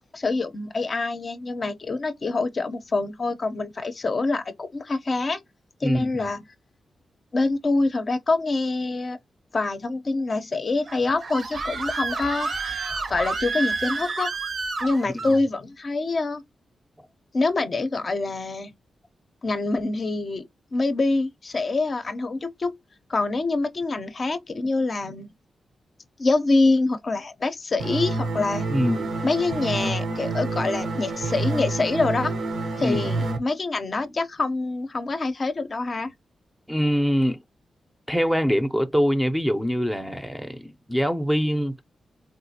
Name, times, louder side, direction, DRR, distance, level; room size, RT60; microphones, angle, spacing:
voice 1, 0.1-5.4 5.8-6.4 7.3-9.2 9.5-12.7 13.1-14.3 14.8-16.4 17.3-18.7 19.4-20.4 20.7-22.7 23.1-25.3 26.2-28.7 29.2-32.3 32.8-36.1, left 3 dB, 45° left, 0.5 m, -25 dB
voice 2, 5.8-6.2 15.2-15.4 28.7-29.1 32.8-33.1 36.7-37.4 38.1-41.8, equal, ahead, 0.5 m, -24 dB
Screaming, 10.9-15.4, right 4 dB, 55° right, 0.6 m, -29 dB
sound 1, 27.8-33.4, right 3 dB, 90° right, 0.8 m, -28 dB
3.6 x 2.4 x 2.7 m
cardioid pair, 75°, 0 cm